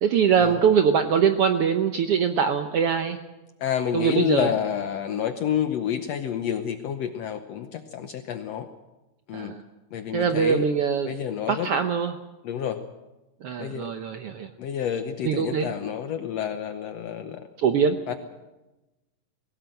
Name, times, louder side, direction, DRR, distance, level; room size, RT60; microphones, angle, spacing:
voice 1, 0.0-3.2 3.9-4.5 9.3-9.6 10.1-11.1 11.5-12.2 13.4-14.5 15.2-15.7 17.6-18.0, right 7 dB, 85° right, 7 dB, 1.3 m, -23 dB
voice 2, 3.6-8.7 9.3-9.5 9.9-10.7 11.1-11.7 12.4-12.8 13.6-13.9 14.6-17.4 18.1-18.2, left 9 dB, 70° left, 8 dB, 1.6 m, -29 dB
22.0 x 18.0 x 7.9 m, 1.1 s
omnidirectional pair, 3.9 m